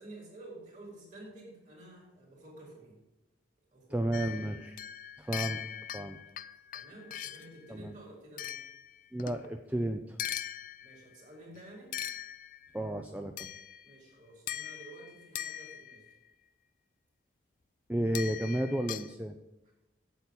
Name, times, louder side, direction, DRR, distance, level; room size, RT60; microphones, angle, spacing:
voice 1, 0.0-3.0 3.7-4.0 4.4-4.6 6.7-8.6 10.8-12.0 13.8-16.1 19.7-19.8, right 2 dB, 40° right, -3 dB, 4.3 m, -51 dB
voice 2, 3.9-4.7 5.2-5.6 5.9-6.2 7.7-7.9 9.1-10.2 12.7-13.5 17.9-19.4, right 1 dB, 10° right, 5 dB, 0.5 m, -32 dB
sound 1, 4.1-7.6 8.4-9.5 10.2-11.1 11.9-12.8 13.4-14.0 14.5-16.1 18.1-19.1, left 10 dB, 45° left, 0.4 m, -41 dB
8.5 x 8.4 x 6.1 m, 0.99 s
head